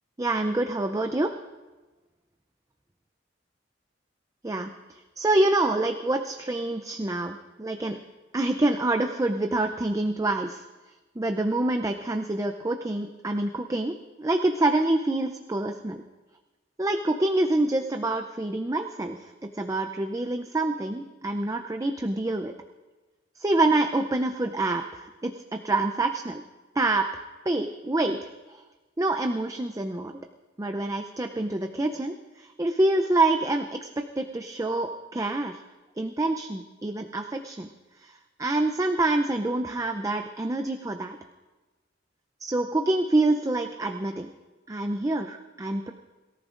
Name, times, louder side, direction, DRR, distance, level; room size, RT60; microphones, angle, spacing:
voice 1, 0.2-1.3 4.4-4.7 5.2-8.0 8.3-10.6 11.2-16.0 16.8-22.5 23.4-26.4 26.8-28.2 28.5-28.6 29.0-30.1 30.6-35.6 36.0-37.7 38.0-38.1 38.4-41.2 42.4-44.3 44.7-45.9, right 2 dB, 20° right, 6 dB, 0.5 m, -26 dB
22.5 x 14.0 x 2.5 m, 1.2 s
head